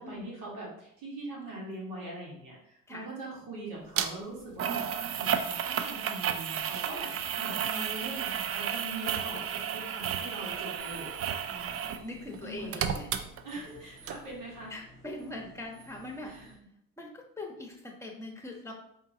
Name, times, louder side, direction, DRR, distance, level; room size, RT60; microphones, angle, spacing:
voice 1, 0.0-4.8 5.1-7.1 7.4-11.1 12.4-12.8 13.4-14.7 16.2-16.5, right 2 dB, 80° right, -4 dB, 1.4 m, -41 dB
sound 1, 4.0-4.1 4.6-12.0 12.3-13.8 14.1-14.2, right 8 dB, 45° right, 0.4 m, -32 dB
sound 2, 10.8-16.6, right 2 dB, 30° right, 1.3 m, -54 dB
voice 2, 11.4-13.1 14.7-16.3 17.0-18.7, left 2 dB, 10° left, 2 dB, 0.9 m, -42 dB
4.6 x 2.7 x 2.7 m, 0.74 s
supercardioid pair, 80°, 31 cm